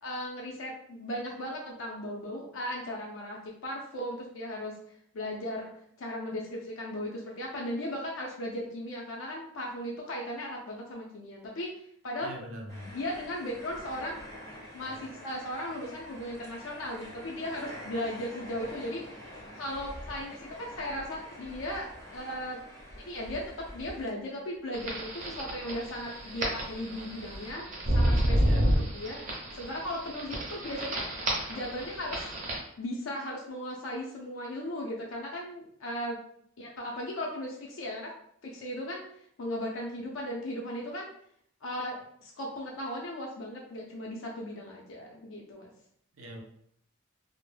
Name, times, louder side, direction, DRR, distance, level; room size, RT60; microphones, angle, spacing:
voice 1, 0.0-5.7 6.0-11.7 12.0-12.3 12.9-14.2 14.7-19.0 19.5-22.6 23.0-27.7 27.9-31.1 31.5-32.3 32.8-36.2 36.6-38.1 38.4-39.0 39.4-41.1 41.6-45.7, left 1 dB, 75° left, -2 dB, 0.5 m, -37 dB
voice 2, 12.2-12.9 28.4-28.9 46.1-46.4, equal, 90° right, 1 dB, 0.6 m, -41 dB
sound 1, 12.7-24.6 24.9-27.5, equal, 15° left, 0.5 m, -47 dB
sound 2, 24.7-32.6, equal, 40° right, 0.6 m, -30 dB
2.1 x 2.0 x 3.1 m, 0.67 s
head